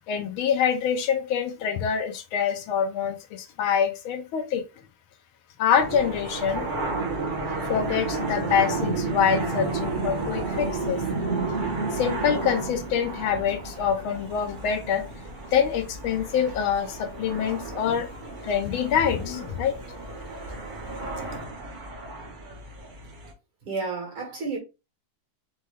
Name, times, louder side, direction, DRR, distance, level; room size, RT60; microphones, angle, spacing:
voice 1, 0.1-4.6 5.6-6.7 7.7-11.0 11.9-15.0 15.5-18.1 18.4-19.8, left 8 dB, 75° left, 1.4 m, -25 dB
sound 1, 5.8-23.3, right 3 dB, 45° right, 0.6 m, -32 dB
voice 2, 23.6-24.6, right 4 dB, 75° right, 2.7 m, -31 dB
5.4 x 2.3 x 3.2 m
omnidirectional pair, 2.4 m